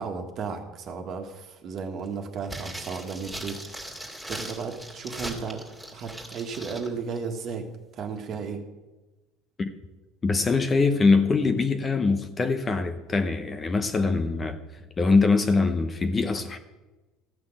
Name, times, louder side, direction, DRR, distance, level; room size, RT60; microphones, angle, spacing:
voice 1, 0.0-3.6 4.3-5.6 5.9-7.7 7.9-8.6, right 5 dB, 40° right, 1.7 m, -34 dB
sound 1, 2.4-6.9 7.2-7.3, right 1 dB, 5° left, 2.2 m, -39 dB
voice 2, 10.2-14.6 15.0-16.6, left 4 dB, 20° left, 0.8 m, -23 dB
14.0 x 6.1 x 8.7 m
cardioid pair, 150°, 0 cm